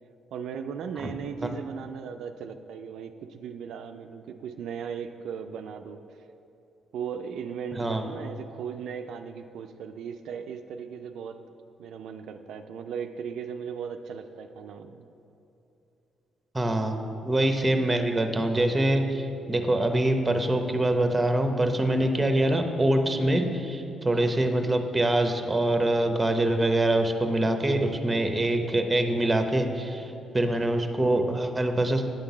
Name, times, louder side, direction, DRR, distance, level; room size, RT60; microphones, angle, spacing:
voice 1, 0.3-6.0 6.9-11.4 11.8-15.1, right 7 dB, 75° right, 7 dB, 0.3 m, -37 dB
voice 2, 7.8-8.1 16.5-32.1, right 1 dB, 15° right, 6 dB, 0.7 m, -24 dB
9.1 x 3.8 x 7.1 m, 2.9 s
cardioid pair, 90°, 0 cm